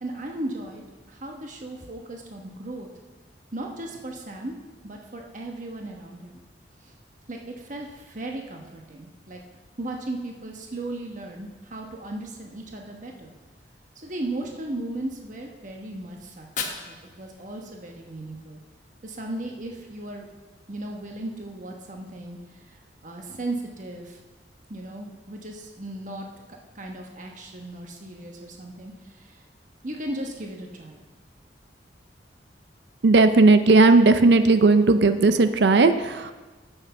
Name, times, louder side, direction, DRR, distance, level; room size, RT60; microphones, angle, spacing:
voice 1, 0.0-2.9 3.5-4.5 4.8-6.4 6.8-6.9 7.3-9.4 9.8-13.3 14.0-18.6 19.0-20.2 20.7-24.2 24.7-29.4 29.8-31.0, right 1 dB, 45° right, 1 dB, 1.1 m, -36 dB
Fire, 16.3-18.3, left 6 dB, 45° left, 1.2 m, -37 dB
voice 2, 33.0-36.3, right 3 dB, 70° right, 10 dB, 0.5 m, -16 dB
8.1 x 8.1 x 5.8 m, 1.2 s
head